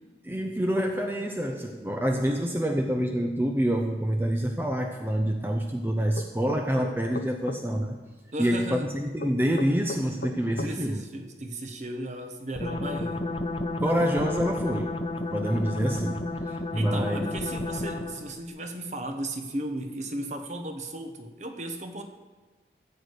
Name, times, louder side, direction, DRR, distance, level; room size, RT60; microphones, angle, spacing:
voice 1, 0.2-8.0 8.4-11.0 13.8-15.0 15.3-16.3 16.7-17.4, equal, 10° right, 3 dB, 0.6 m, -27 dB
sound 1, 6.2-7.6 9.2-10.7, left 2 dB, 65° left, 0.7 m, -36 dB
voice 2, 8.3-8.9 10.6-13.3 16.7-22.0, right 1 dB, 40° right, 5 dB, 1.0 m, -35 dB
sound 2, 12.6-18.3, left 2 dB, 30° left, 0.7 m, -32 dB
14.0 x 4.9 x 8.2 m, 1.4 s
head